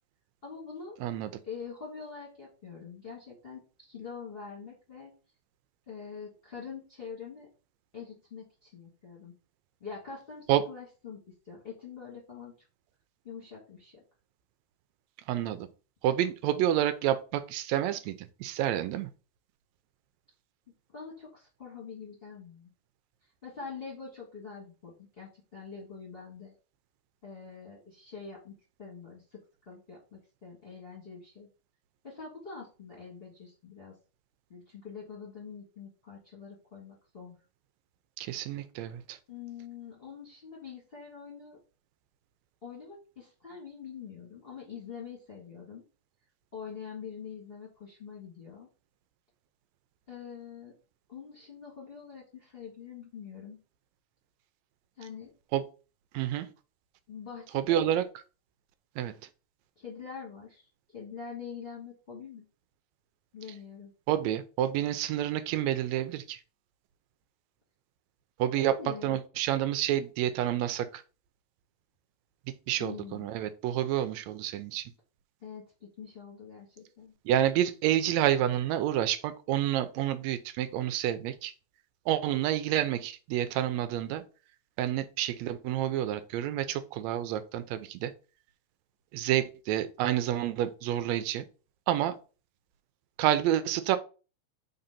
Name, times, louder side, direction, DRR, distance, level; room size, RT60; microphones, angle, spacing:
voice 1, 0.4-1.0 1.4-5.1 5.9-7.5 7.9-9.3 9.8-12.5 13.2-14.0 20.9-22.7 23.4-26.5 27.2-31.5 32.0-34.0 34.5-37.3 39.3-41.6 42.6-45.8 46.5-48.7 50.1-50.8 51.1-53.6 55.0-55.3 57.1-57.9 59.7-62.4 63.3-63.9 68.5-69.2 72.8-73.3 75.4-77.1, left 6 dB, 25° left, -4 dB, 1.2 m, -45 dB
voice 2, 15.3-15.7 16.0-19.1 38.2-39.2 55.5-55.6 56.1-56.5 57.5-58.0 59.0-59.1 64.1-66.4 68.4-68.8 69.0-71.0 72.5-74.9 77.2-81.5 82.1-84.2 84.8-88.1 89.1-91.4 91.9-92.2 93.2-94.0, right 12 dB, 80° right, 11 dB, 1.7 m, -29 dB
4.4 x 3.9 x 5.6 m, 0.35 s
omnidirectional pair, 3.5 m